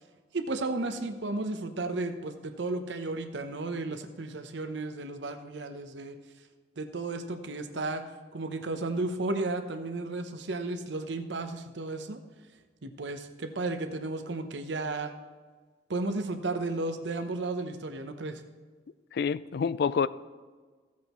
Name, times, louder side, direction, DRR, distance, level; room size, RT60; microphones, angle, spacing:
voice 1, 0.3-6.2 6.8-8.0 8.3-12.2 12.8-15.1 15.9-18.4, right 2 dB, 75° right, 0.9 m, -33 dB
voice 2, 19.1-20.1, left 6 dB, 60° left, 0.3 m, -27 dB
15.5 x 8.4 x 3.1 m
head